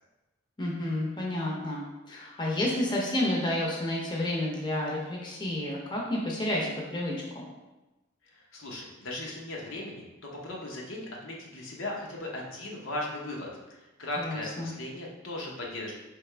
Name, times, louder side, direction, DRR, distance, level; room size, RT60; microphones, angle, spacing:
voice 1, 0.6-7.4 14.2-14.7, left 1 dB, 20° left, -3 dB, 0.7 m, -30 dB
voice 2, 8.3-15.9, left 1 dB, 80° left, -2 dB, 0.9 m, -37 dB
4.5 x 3.4 x 3.3 m, 1.1 s
head